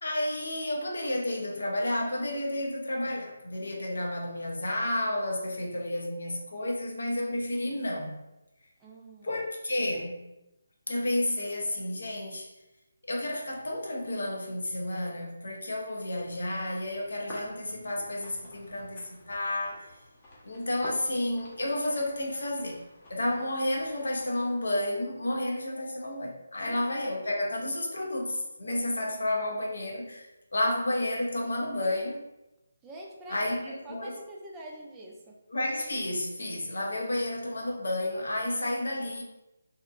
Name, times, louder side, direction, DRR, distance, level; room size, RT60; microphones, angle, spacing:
voice 1, 0.0-8.2 9.2-10.3 10.9-12.5 13.0-19.9 20.4-22.8 23.1-32.2 33.3-34.1 35.5-39.2, left 1 dB, 70° left, 0 dB, 0.6 m, -31 dB
voice 2, 8.8-9.4 26.7-26.9 32.8-35.4, right 1 dB, 10° right, -3 dB, 0.4 m, -46 dB
sound 1, 16.1-24.5, left 1 dB, 25° left, 0.7 m, -49 dB
2.7 x 2.1 x 2.4 m, 0.96 s
figure-of-eight pair, 155°, 0 cm